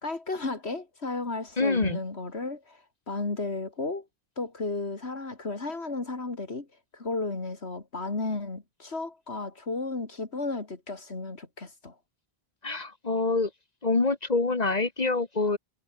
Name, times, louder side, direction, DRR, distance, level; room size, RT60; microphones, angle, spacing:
voice 1, 0.0-4.1 4.4-6.7 6.9-12.0, left 3 dB, 80° left, 3.2 m, -33 dB
voice 2, 1.6-2.0 12.6-13.5 13.8-15.6, left 3 dB, 40° left, 1.6 m, -26 dB
omnidirectional pair, 1.1 m